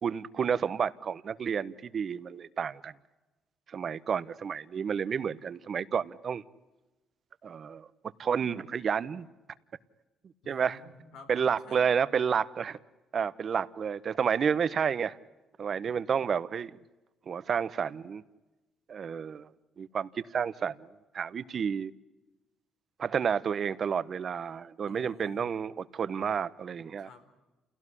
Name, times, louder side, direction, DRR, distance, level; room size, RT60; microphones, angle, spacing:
voice 1, 0.0-2.9 3.7-6.4 7.4-7.9 8.2-9.3 10.5-10.8 11.3-12.8 13.1-15.2 15.6-16.8 17.3-18.2 18.9-19.5 19.8-20.9 21.1-21.9 23.0-27.1, right 7 dB, 45° right, 1.0 m, -30 dB
voice 2, 10.4-12.0 24.8-25.6 26.7-27.2, left 2 dB, 85° left, 4.5 m, -52 dB
28.5 x 17.5 x 9.9 m
cardioid pair, 95°, 0 cm